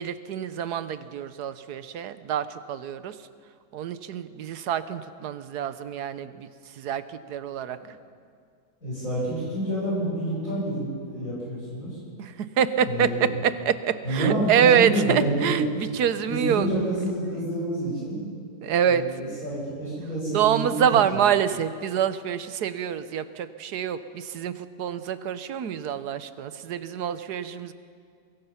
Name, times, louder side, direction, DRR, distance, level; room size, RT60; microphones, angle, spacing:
voice 1, 0.0-3.2 3.7-6.5 6.7-7.8 12.2-16.7 18.6-19.0 20.3-27.7, right 8 dB, 85° right, 12 dB, 1.4 m, -26 dB
voice 2, 8.8-12.0 12.8-13.2 14.0-15.6 16.3-18.2 18.8-21.0, right 1 dB, 55° left, -8 dB, 8.5 m, -28 dB
24.5 x 21.0 x 5.8 m, 2.2 s
omnidirectional pair, 1.7 m